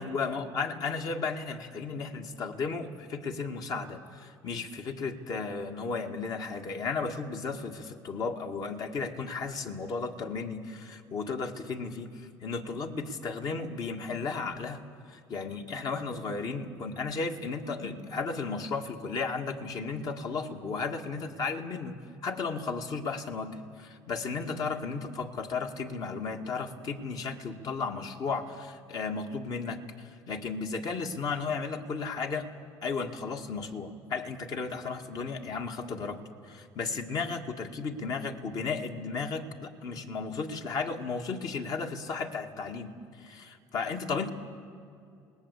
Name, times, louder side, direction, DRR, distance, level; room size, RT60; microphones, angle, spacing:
voice 1, 0.0-14.8 15.1-32.5 32.8-44.3, left 4 dB, 50° left, 4 dB, 2.0 m, -34 dB
27.0 x 19.5 x 8.3 m, 2.5 s
supercardioid pair, 100°, 8 cm